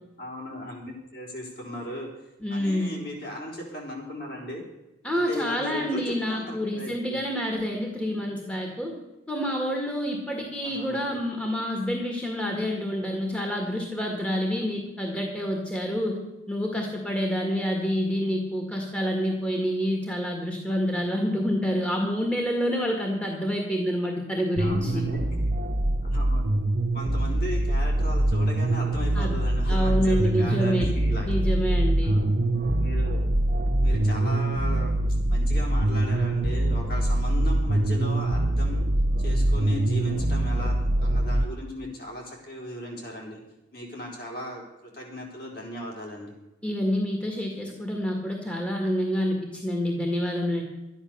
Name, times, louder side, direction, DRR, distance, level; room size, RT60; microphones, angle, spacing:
voice 1, 0.2-2.1 2.5-4.6 5.1-7.2 10.6-11.2 24.6-25.5 26.0-26.4 26.9-31.3 32.0-32.3 32.8-33.3 33.8-38.8 39.2-43.4 43.7-46.3, left 1 dB, 50° left, -1 dB, 4.1 m, -37 dB
voice 2, 2.4-3.0 5.0-8.9 9.3-16.2 16.5-25.0 29.2-29.4 29.7-30.9 31.2-32.2 46.6-50.6, equal, 5° left, 1 dB, 1.8 m, -27 dB
sound 1, 24.6-41.4, right 1 dB, 55° right, 1.0 m, -24 dB
12.5 x 10.0 x 6.7 m, 0.98 s
head